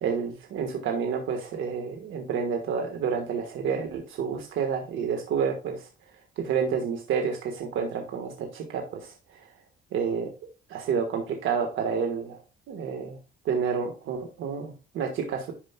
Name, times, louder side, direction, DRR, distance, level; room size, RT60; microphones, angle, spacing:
voice 1, 0.0-5.9 6.4-9.4 9.9-10.3 10.7-12.4 12.7-13.2 13.4-15.5, right 6 dB, 80° right, 3 dB, 1.5 m, -29 dB
11.5 x 5.1 x 2.3 m, 0.32 s
cardioid pair, 90°, 20 cm